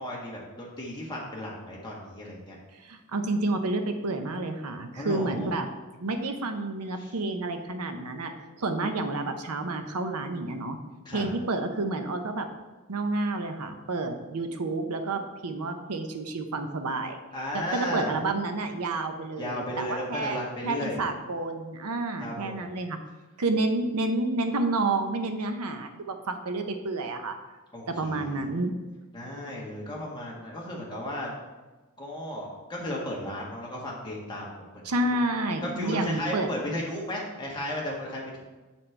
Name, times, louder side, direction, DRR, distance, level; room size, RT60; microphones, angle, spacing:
voice 1, 0.0-2.5 4.9-5.5 7.0-7.1 11.0-11.3 17.3-18.2 19.4-21.0 22.2-22.8 27.7-28.4 29.1-31.3 32.0-35.1 35.6-38.4, left 1 dB, 20° left, -3 dB, 1.4 m, -35 dB
voice 2, 2.8-5.7 6.0-8.3 8.6-10.8 11.1-12.5 12.9-17.2 17.5-23.0 23.4-27.3 27.9-28.7 34.8-36.7, right 2 dB, 90° right, 6 dB, 0.7 m, -30 dB
8.0 x 4.3 x 4.4 m, 1.2 s
head